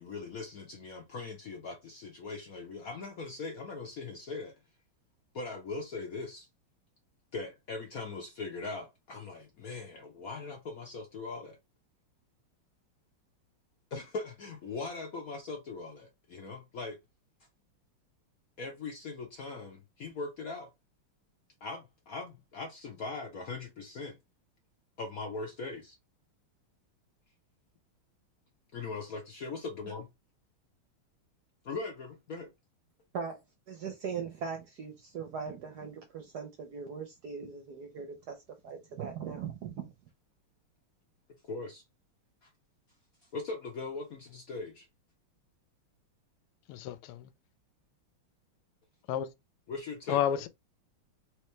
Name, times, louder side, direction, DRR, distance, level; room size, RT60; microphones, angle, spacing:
voice 1, 0.0-4.6 5.3-6.5 7.3-11.6 13.9-17.0 18.6-20.7 21.6-24.2 25.0-26.0 28.7-30.1 31.6-32.5 41.5-41.8 42.4-42.5 43.3-44.9 49.7-50.4, left 3 dB, 65° left, 0.8 m, -40 dB
voice 2, 33.7-38.4 38.6-39.9, right 6 dB, 65° right, 1.0 m, -40 dB
voice 3, 46.7-47.3 49.1-49.3 50.1-50.5, left 10 dB, 90° left, 1.5 m, -30 dB
3.5 x 3.2 x 3.1 m
omnidirectional pair, 2.4 m